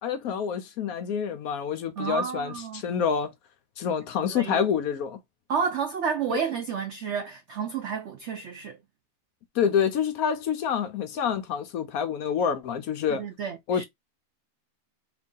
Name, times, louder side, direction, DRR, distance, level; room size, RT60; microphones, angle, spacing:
voice 1, 0.0-3.3 3.8-5.2 6.3-6.4 9.5-13.2 13.7-13.8, left 7 dB, 70° left, 1.0 m, -27 dB
voice 2, 2.0-2.8 4.2-4.6 5.5-8.8 13.1-13.8, right 6 dB, 80° right, 0.6 m, -31 dB
2.9 x 2.7 x 3.6 m
omnidirectional pair, 1.7 m